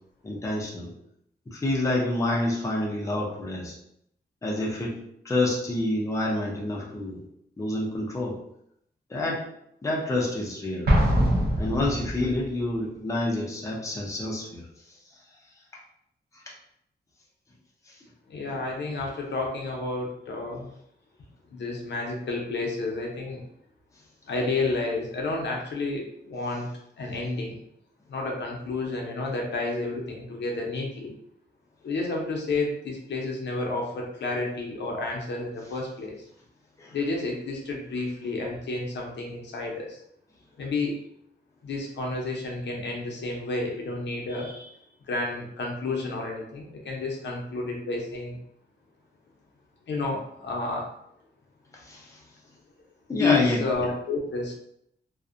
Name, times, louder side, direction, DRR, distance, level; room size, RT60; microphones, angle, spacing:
voice 1, 0.2-0.9 1.5-3.7 4.4-5.0 5.2-7.2 7.6-8.4 9.1-9.4 9.8-10.9 11.6-14.6 16.5-16.6 36.8-37.0 51.8-52.2 53.1-53.6, left 1 dB, 15° left, -3 dB, 0.4 m, -28 dB
Explosion, 10.9-12.5, equal, 65° right, 0.5 m, -23 dB
voice 2, 18.3-20.7 21.5-23.4 24.3-26.7 27.0-27.6 28.1-31.1 31.8-36.2 36.9-40.0 40.6-41.0 41.6-44.7 45.1-48.4 49.9-50.9 53.2-54.5, left 3 dB, 85° left, 0 dB, 0.6 m, -30 dB
2.5 x 2.1 x 2.4 m, 0.75 s
wide cardioid pair, 175°, 18 cm